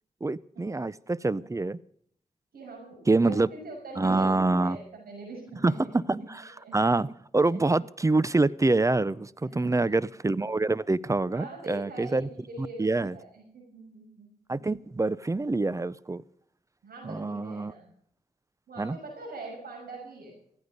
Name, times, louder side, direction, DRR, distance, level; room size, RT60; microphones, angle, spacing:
voice 1, 0.2-1.8 3.1-3.5 4.0-4.8 5.6-7.1 7.3-12.3 12.6-13.1 14.5-16.2 17.0-17.7 18.8-19.0, right 2 dB, 20° right, 20 dB, 0.5 m, -26 dB
voice 2, 2.5-6.0 6.6-7.0 7.3-7.7 9.4-9.9 11.3-14.6 16.8-17.9 18.7-20.4, right 2 dB, 85° right, 0 dB, 6.0 m, -43 dB
15.0 x 14.5 x 5.3 m, 0.65 s
cardioid pair, 65°, 15 cm